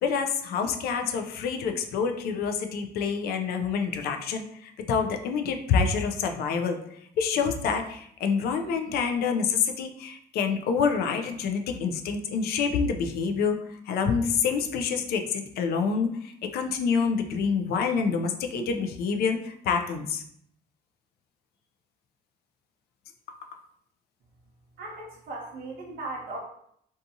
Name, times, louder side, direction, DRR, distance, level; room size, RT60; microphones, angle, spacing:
voice 1, 0.0-6.8 7.2-20.2 23.3-23.6, left 6 dB, 70° left, 5 dB, 0.4 m, -27 dB
voice 2, 24.8-26.4, right 2 dB, 65° right, -2 dB, 0.6 m, -37 dB
2.6 x 2.3 x 2.6 m, 0.68 s
cardioid pair, 110°, 17 cm